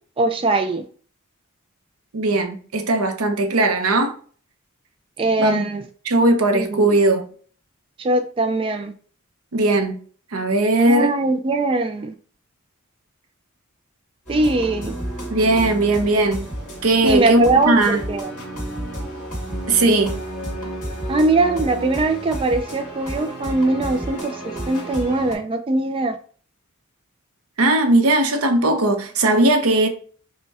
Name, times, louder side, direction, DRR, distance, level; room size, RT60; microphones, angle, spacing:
voice 1, 0.2-0.8 5.2-5.8 6.5-6.9 8.0-8.9 10.9-12.1 14.3-15.0 17.0-18.3 21.1-26.2, right 2 dB, 25° right, 0.3 m, -21 dB
voice 2, 2.1-4.2 5.4-5.7 6.0-7.3 9.5-10.0 10.3-11.1 15.3-16.5 16.8-18.0 19.7-20.2 27.6-29.9, right 2 dB, 75° right, 0.7 m, -18 dB
sound 1, 14.3-25.3, right 1 dB, 35° left, 2.0 m, -31 dB
5.3 x 2.2 x 3.5 m
head